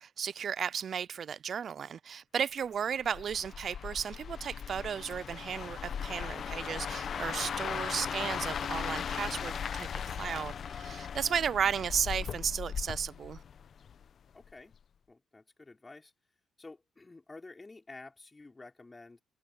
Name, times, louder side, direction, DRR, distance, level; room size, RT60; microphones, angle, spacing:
voice 1, 0.0-13.4, right 7 dB, 55° right, 0.4 m, -34 dB
sound 1, 3.0-14.1 14.4-14.7, left 7 dB, 55° left, 0.8 m, -38 dB
voice 2, 14.3-14.8 15.1-16.1 16.6-19.2, left 3 dB, 20° left, 4.8 m, -51 dB
open air
cardioid pair, 90°, 0 cm